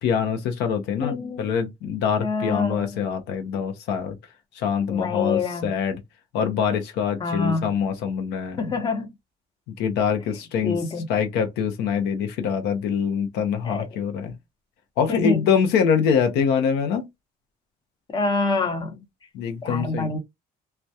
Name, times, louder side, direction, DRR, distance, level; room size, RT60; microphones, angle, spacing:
voice 1, 0.0-4.2 4.6-6.0 6.3-8.6 9.8-10.8 11.1-14.3 15.0-17.1 19.3-20.1, left 7 dB, 90° left, 0.7 m, -24 dB
voice 2, 1.0-1.5 2.2-3.1 4.9-5.7 7.2-7.7 8.6-9.1 10.6-11.1 13.6-13.9 15.1-15.5 18.1-19.0 19.6-20.2, left 4 dB, 25° left, 0.8 m, -26 dB
2.2 x 2.2 x 2.7 m
cardioid pair, 110°, 17 cm